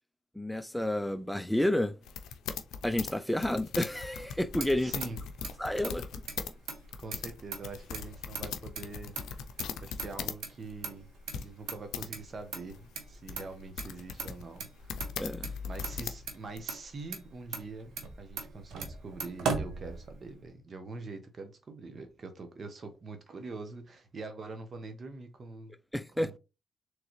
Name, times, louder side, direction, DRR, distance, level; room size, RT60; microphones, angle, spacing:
voice 1, 0.4-1.9 2.8-4.9 5.6-6.2 15.2-15.5 25.9-26.4, left 1 dB, 5° left, 0.4 m, -30 dB
sound 1, 2.0-6.5 6.8-10.4 10.7-10.8 11.3-12.1 12.7-16.6, left 7 dB, 80° left, 0.5 m, -39 dB
Motor vehicle (road), 4.2-20.4, right 5 dB, 75° right, 0.9 m, -41 dB
voice 2, 4.8-5.2 7.0-9.1 9.8-11.1 11.3-15.1 15.7-25.7 26.2-26.4, right 3 dB, 50° right, 1.0 m, -44 dB
3.8 x 3.2 x 3.0 m
supercardioid pair, 65°, 0 cm